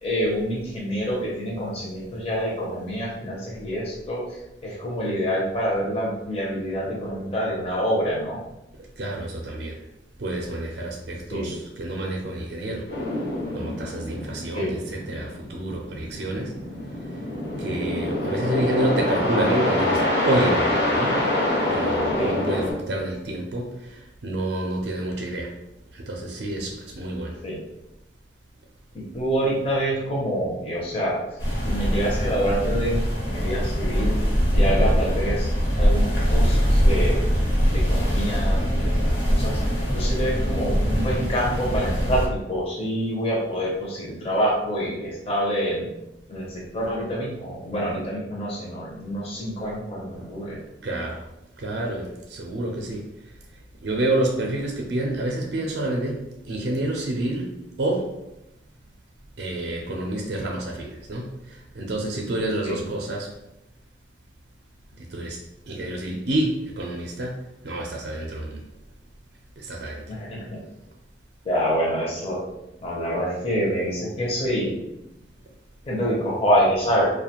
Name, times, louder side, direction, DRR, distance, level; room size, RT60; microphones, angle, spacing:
voice 1, 0.0-8.4 11.3-11.5 14.5-14.7 22.2-22.3 27.4-27.6 29.1-31.2 31.6-34.2 34.5-35.5 35.8-37.2 37.7-45.9 46.3-50.6 62.6-62.8 70.1-70.6 71.4-72.4 72.8-74.7 75.9-77.1, equal, 35° left, -4 dB, 0.5 m, -26 dB
voice 2, 9.0-9.8 10.2-12.9 13.5-16.6 17.6-21.2 21.7-25.5 25.9-27.4 50.8-51.2 51.6-53.1 53.8-58.1 59.4-63.3 65.0-65.4 65.7-68.6 69.6-70.0, right 1 dB, 60° right, 0 dB, 0.4 m, -28 dB
sound 1, 12.9-22.7, left 1 dB, 65° left, 0.9 m, -26 dB
sound 2, 31.4-42.3, equal, 90° left, 1.1 m, -22 dB
2.4 x 2.2 x 2.8 m, 0.89 s
head